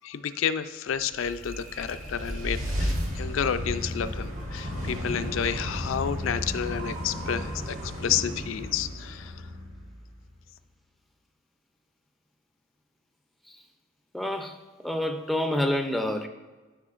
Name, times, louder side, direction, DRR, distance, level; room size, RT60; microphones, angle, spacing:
voice 1, 0.0-9.3, left 8 dB, 70° left, 11 dB, 0.4 m, -30 dB
sound 1, 1.0-10.3, equal, 80° right, 1.8 m, -33 dB
voice 2, 14.1-14.6 14.8-16.3, left 1 dB, ahead, 5 dB, 0.4 m, -27 dB
12.5 x 4.9 x 2.5 m, 1.3 s
head